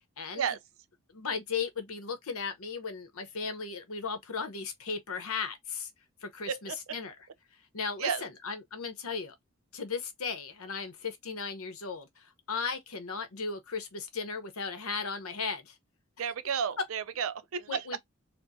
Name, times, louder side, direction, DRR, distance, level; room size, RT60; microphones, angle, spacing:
voice 1, 0.2-0.5 1.1-5.9 6.2-7.2 7.7-9.3 9.7-15.8 17.7-18.0, left 5 dB, 85° left, 0.9 m, -36 dB
voice 2, 16.2-17.8, right 7 dB, 75° right, 0.4 m, -32 dB
4.4 x 2.1 x 2.6 m
head